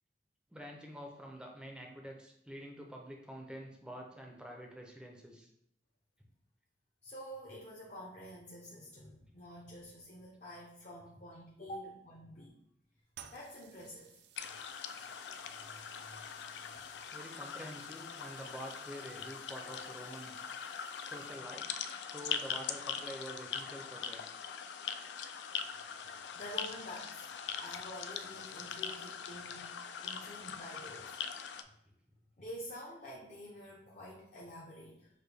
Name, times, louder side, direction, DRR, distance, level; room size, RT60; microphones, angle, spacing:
voice 1, 0.5-5.5 17.1-20.3 21.0-21.7 22.0-24.2, equal, 5° right, 1 dB, 0.5 m, -47 dB
voice 2, 7.0-12.5 13.3-14.1 15.7-16.4 26.3-27.3 27.6-29.7 30.0-31.2 32.4-35.1, equal, 40° left, -3 dB, 0.7 m, -48 dB
sound 1, 13.1-21.7, right 9 dB, 65° right, 0.4 m, -60 dB
sound 2, 14.4-31.6, left 7 dB, 75° left, 0.3 m, -42 dB
6.5 x 2.2 x 3.3 m, 0.77 s
head